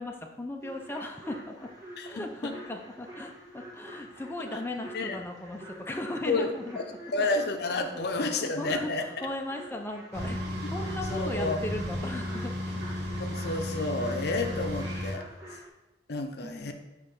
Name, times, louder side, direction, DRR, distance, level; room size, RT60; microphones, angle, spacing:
voice 1, 0.0-1.7 2.0-6.8 7.2-7.3 8.1-12.8 16.4-16.7, left 1 dB, 15° left, 2 dB, 0.5 m, -37 dB
sound 1, 0.6-15.7, right 1 dB, 20° right, 1.3 m, -47 dB
voice 2, 2.0-2.5 4.9-5.2 6.3-6.8 7.1-9.0 11.1-11.6 13.2-15.3 16.1-16.7, left 3 dB, 65° left, 6 dB, 0.6 m, -30 dB
sound 2, 10.1-15.1, left 1 dB, 65° right, 1.4 m, -34 dB
6.7 x 3.2 x 5.3 m, 0.99 s
head